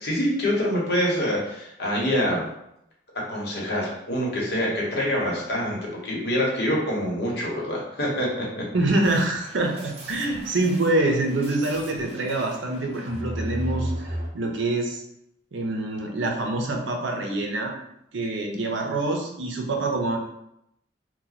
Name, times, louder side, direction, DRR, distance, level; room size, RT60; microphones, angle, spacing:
voice 1, 0.0-2.5 3.3-8.6, equal, 55° left, -3 dB, 1.0 m, -25 dB
voice 2, 8.7-15.0 15.5-17.7 18.1-20.2, right 2 dB, 75° right, 2 dB, 0.6 m, -25 dB
sound 1, 9.0-14.3, equal, 30° right, 0.6 m, -35 dB
2.9 x 2.2 x 4.0 m, 0.80 s
head